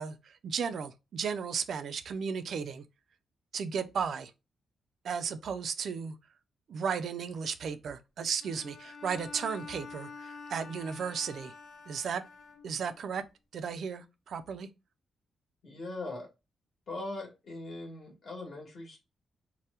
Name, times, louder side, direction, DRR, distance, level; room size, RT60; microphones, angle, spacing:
voice 1, 0.0-2.8 3.5-4.3 5.0-6.2 6.7-11.5 11.9-12.2 12.6-13.2 13.5-14.7, right 6 dB, 60° right, 0.3 m, -35 dB
Bowed string instrument, 8.4-13.0, left 4 dB, 65° left, 0.4 m, -47 dB
voice 2, 15.6-16.3 16.9-19.0, left 2 dB, 45° left, 1.1 m, -40 dB
2.8 x 2.0 x 3.3 m
wide cardioid pair, 160°, 0 cm